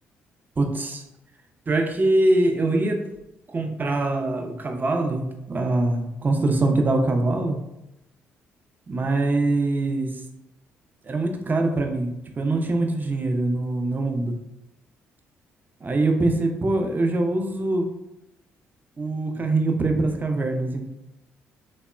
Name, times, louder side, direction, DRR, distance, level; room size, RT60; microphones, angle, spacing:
voice 1, 0.6-1.0 1.7-3.1 3.5-7.6 8.9-10.2 11.0-14.4 15.8-17.9 19.0-20.9, right 2 dB, 30° right, 4 dB, 0.5 m, -23 dB
3.4 x 2.1 x 2.3 m, 0.88 s
hypercardioid pair, 45°, 6 cm